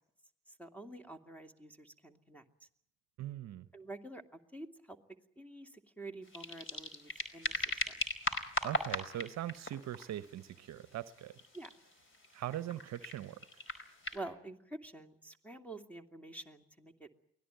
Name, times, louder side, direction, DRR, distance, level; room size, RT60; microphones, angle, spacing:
voice 1, 0.6-2.4 3.7-5.0 5.4-5.7 6.0-7.9 11.5-11.7 14.1-17.1, right 2 dB, 5° left, 7 dB, 2.4 m, -48 dB
voice 2, 3.2-3.7 8.6-11.4 12.3-13.6, right 12 dB, 55° right, 14 dB, 1.0 m, -41 dB
sound 1, 6.2-14.2, left 2 dB, 35° left, 4.8 m, -40 dB
24.0 x 17.5 x 9.3 m, 0.74 s
hypercardioid pair, 55°, 33 cm